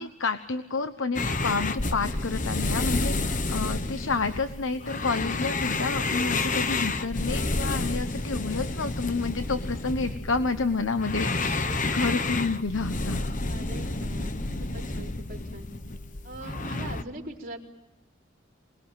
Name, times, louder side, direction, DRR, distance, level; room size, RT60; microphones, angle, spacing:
voice 1, 0.0-13.2, left 4 dB, 75° left, 9 dB, 1.0 m, -30 dB
sound 1, 1.1-17.0, left 2 dB, 40° left, 1.1 m, -30 dB
voice 2, 13.5-14.5 14.7-15.7 16.2-17.6, right 2 dB, 40° right, -1 dB, 3.9 m, -41 dB
27.5 x 20.5 x 9.1 m, 0.93 s
head